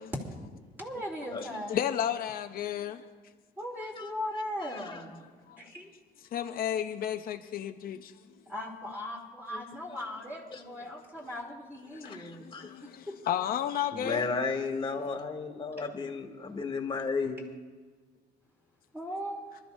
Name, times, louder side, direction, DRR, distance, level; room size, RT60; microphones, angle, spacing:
voice 1, 0.8-1.8 3.6-5.2 5.6-5.9 8.5-12.5 13.1-13.2 18.9-19.4, left 1 dB, 10° right, -3 dB, 3.1 m, -38 dB
voice 2, 1.7-3.0 5.5-5.6 6.3-8.1 9.5-9.6 11.9-14.2, left 10 dB, 60° left, 6 dB, 0.7 m, -33 dB
voice 3, 4.6-5.0 10.5-10.6 12.0-12.8 13.9-17.4, left 4 dB, 25° left, 3 dB, 1.9 m, -34 dB
26.5 x 13.0 x 2.7 m, 1.4 s
cardioid pair, 110°, 17 cm